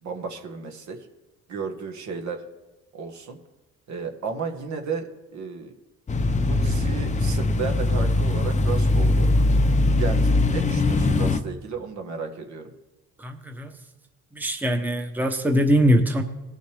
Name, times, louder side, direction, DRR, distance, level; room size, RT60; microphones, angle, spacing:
voice 1, 0.0-1.0 1.5-2.4 2.9-3.4 3.9-5.7 6.4-9.3 9.7-12.7, right 5 dB, 65° right, 3 dB, 1.5 m, -33 dB
sound 1, 6.1-11.4, left 2 dB, 25° left, 0.6 m, -21 dB
voice 2, 13.2-13.7 14.3-16.2, equal, 5° right, 5 dB, 0.9 m, -22 dB
18.5 x 6.5 x 3.4 m, 1.1 s
cardioid pair, 90°, 30 cm